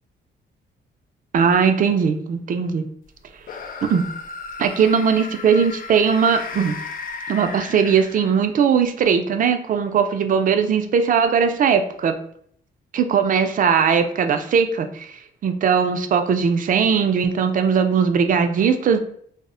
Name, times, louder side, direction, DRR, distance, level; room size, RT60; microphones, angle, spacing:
voice 1, 1.3-2.8 3.9-4.0 4.6-6.7 7.3-12.1 12.9-19.0, right 6 dB, 45° right, 8 dB, 0.4 m, -19 dB
sound 1, 3.4-8.6, left 4 dB, 45° left, 0.4 m, -35 dB
2.0 x 2.0 x 3.6 m, 0.63 s
cardioid pair, 90°, 20 cm